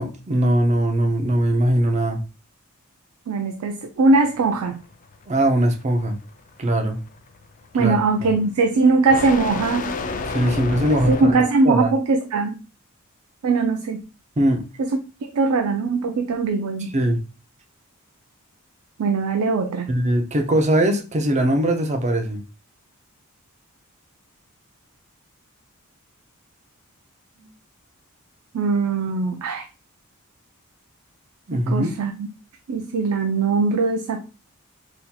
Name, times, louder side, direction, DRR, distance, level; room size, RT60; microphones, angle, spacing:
voice 1, 0.0-2.2 5.3-6.2 6.6-7.0 7.8-8.3 10.3-11.9 14.4-14.6 16.9-17.2 19.9-22.4 31.5-31.9, right 1 dB, 30° right, 0.5 m, -21 dB
voice 2, 3.3-4.8 7.7-9.9 11.1-12.6 13.4-14.0 14.8-14.9 15.3-16.9 19.0-19.9 28.5-29.6 31.5-32.3 32.7-34.2, right 3 dB, 85° right, 0.4 m, -21 dB
sound 1, 4.1-11.4, left 4 dB, 35° left, 0.4 m, -31 dB
4.0 x 2.8 x 2.2 m
head